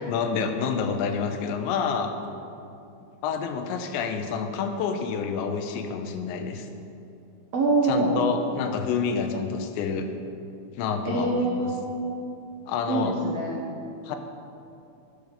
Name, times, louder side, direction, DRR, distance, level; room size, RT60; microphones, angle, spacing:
voice 1, 0.1-2.1 3.2-6.7 7.8-10.1 10.8-11.7 12.7-13.2 14.1-14.2, left 6 dB, 80° left, 6 dB, 3.1 m, -28 dB
voice 2, 7.5-8.2 11.1-12.1 12.9-13.5, right 2 dB, 85° right, -3 dB, 1.4 m, -25 dB
14.5 x 9.1 x 6.7 m, 2.6 s
omnidirectional pair, 5.2 m